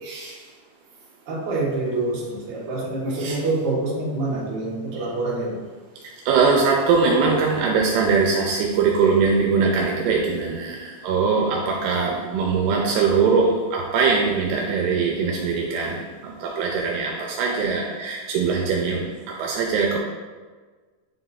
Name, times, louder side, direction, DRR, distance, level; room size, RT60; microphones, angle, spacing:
voice 1, 1.2-5.6, right 2 dB, 60° right, -6 dB, 1.5 m, -26 dB
voice 2, 6.3-20.0, right 5 dB, 85° right, -1 dB, 2.5 m, -21 dB
9.7 x 3.9 x 2.6 m, 1.4 s
omnidirectional pair, 5.0 m